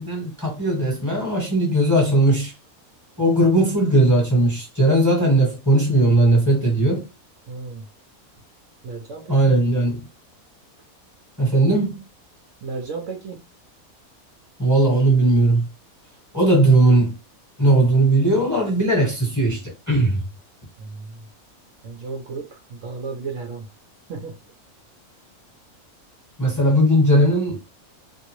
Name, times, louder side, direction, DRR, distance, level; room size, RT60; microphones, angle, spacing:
voice 1, 0.0-2.5 3.2-7.1 9.3-10.0 11.4-12.0 14.6-15.7 16.3-17.2 17.6-20.3 26.4-27.6, right 1 dB, 15° left, 1.0 m, -18 dB
voice 2, 7.5-7.9 8.8-9.6 12.6-13.4 20.8-21.3 21.8-23.7 24.1-24.4, right 4 dB, 65° right, 0.9 m, -34 dB
3.4 x 2.6 x 3.0 m
omnidirectional pair, 1.5 m